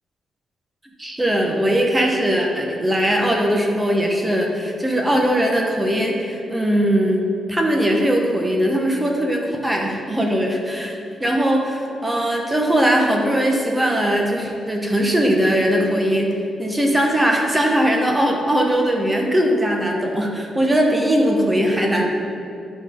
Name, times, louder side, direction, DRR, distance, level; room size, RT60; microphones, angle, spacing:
voice 1, 1.0-7.2 7.5-16.3 16.6-22.1, equal, 15° right, 0 dB, 1.2 m, -20 dB
11.5 x 4.2 x 3.7 m, 2.6 s
cardioid pair, 100°, 0 cm